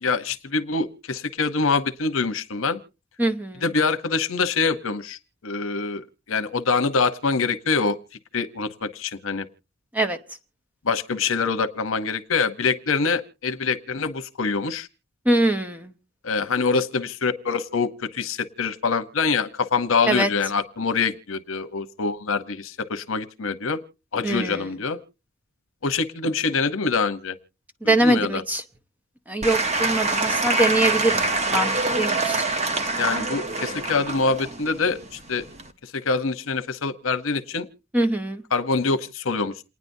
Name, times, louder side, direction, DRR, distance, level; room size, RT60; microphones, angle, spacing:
voice 1, 0.0-2.8 3.6-8.0 8.3-9.5 10.8-14.9 16.2-23.8 24.1-25.0 25.8-27.4 27.8-28.4 33.0-35.4 35.8-37.7 38.5-39.5, left 4 dB, 90° left, 10 dB, 0.9 m, -25 dB
voice 2, 3.2-3.6 9.9-10.2 15.3-15.9 20.1-20.3 24.2-24.7 27.8-28.6 29.3-32.4 37.9-38.4, right 1 dB, 10° right, 7 dB, 0.8 m, -23 dB
Applause / Crowd, 29.4-35.7, right 2 dB, 35° right, 0.9 m, -25 dB
28.5 x 9.6 x 2.7 m, 0.31 s
head